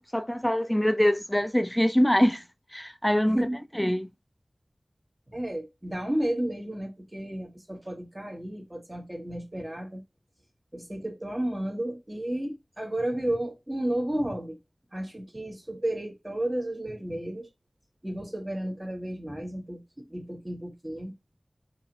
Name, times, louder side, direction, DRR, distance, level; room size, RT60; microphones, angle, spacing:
voice 1, 0.0-2.4 2.7-3.5 3.8-4.1, equal, 10° left, 0.3 m, -24 dB
voice 2, 3.3-3.6 5.3-10.0 10.7-14.6 14.9-17.5 18.0-21.1, right 1 dB, 25° right, 1.0 m, -32 dB
4.0 x 2.5 x 2.9 m
wide cardioid pair, 50°, 0 cm